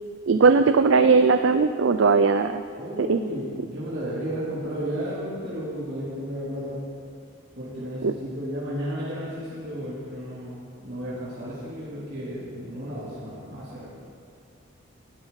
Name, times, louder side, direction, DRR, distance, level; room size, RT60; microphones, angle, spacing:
voice 1, 0.3-2.6 3.0-3.2 8.0-8.1, right 4 dB, 65° right, 9 dB, 0.4 m, -19 dB
voice 2, 2.8-6.8 7.6-13.9, equal, 50° right, -10 dB, 3.6 m, -33 dB
17.5 x 13.0 x 4.1 m, 2.3 s
head